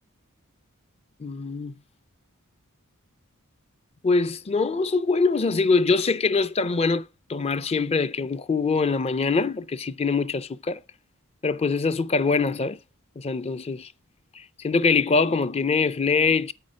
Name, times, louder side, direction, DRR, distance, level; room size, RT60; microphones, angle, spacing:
voice 1, 1.2-1.8 4.0-10.8 11.4-12.8 13.2-13.9 14.4-16.5, left 4 dB, 30° left, 0.4 m, -23 dB
8.4 x 5.4 x 6.2 m
head